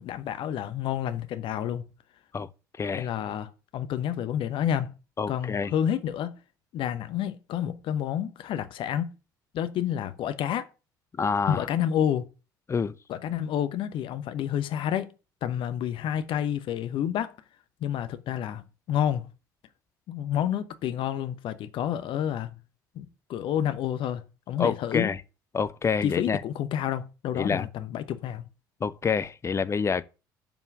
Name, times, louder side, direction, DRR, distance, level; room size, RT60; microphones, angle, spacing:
voice 1, 0.0-1.8 2.9-4.9 5.3-6.3 6.7-9.1 9.5-10.7 11.5-12.3 13.1-15.1 15.4-17.3 17.8-19.3 20.1-22.6 22.9-23.0 23.3-25.1 26.0-28.5, left 10 dB, 50° left, 0.9 m, -29 dB
voice 2, 5.2-5.7 11.2-11.7 12.7-12.9 24.6-25.2 25.5-26.4 27.3-27.7 28.8-30.0, left 5 dB, 25° left, 0.7 m, -27 dB
7.2 x 5.5 x 7.4 m
figure-of-eight pair, 60°, 11 cm